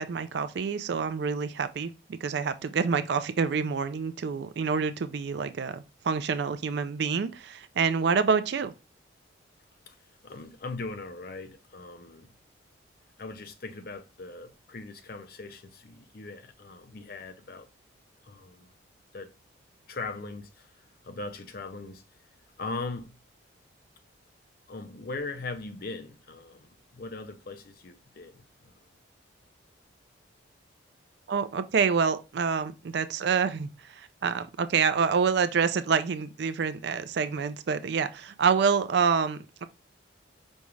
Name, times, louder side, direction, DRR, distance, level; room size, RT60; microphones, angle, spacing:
voice 1, 0.0-8.7 31.3-39.7, right 6 dB, 60° right, 0.3 m, -27 dB
voice 2, 10.2-12.3 13.2-17.7 18.2-18.7 19.1-19.3 19.9-20.7 21.0-22.0 22.6-23.1 24.7-28.7, left 3 dB, 50° left, 0.5 m, -40 dB
5.2 x 2.3 x 3.0 m
head